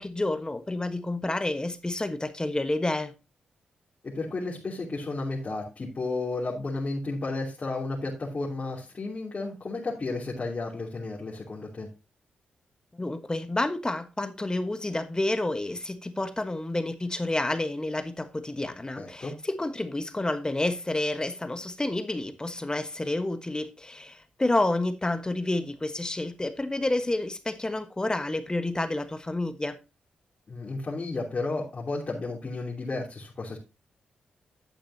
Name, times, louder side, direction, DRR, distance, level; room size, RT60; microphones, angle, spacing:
voice 1, 0.0-3.1 13.0-29.8, left 2 dB, 20° left, 1.3 m, -29 dB
voice 2, 4.1-11.9 19.0-19.3 30.5-33.6, left 3 dB, 45° left, 3.0 m, -33 dB
10.5 x 8.8 x 2.8 m
supercardioid pair, 45°, 4 cm